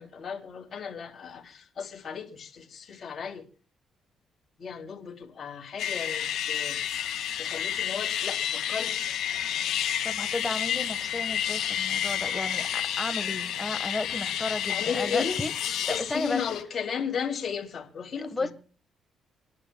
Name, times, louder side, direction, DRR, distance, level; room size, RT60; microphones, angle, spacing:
voice 1, 0.0-3.5 4.6-6.8 7.4-8.9 14.7-15.4 15.9-18.5, left 7 dB, 50° left, 2.8 m, -35 dB
sound 1, 5.8-16.6, left 10 dB, 75° left, 2.0 m, -30 dB
voice 2, 10.0-15.5 15.9-16.4 18.3-18.5, left 2 dB, 20° left, 1.4 m, -33 dB
26.0 x 10.5 x 2.3 m
cardioid pair, 90°, 0 cm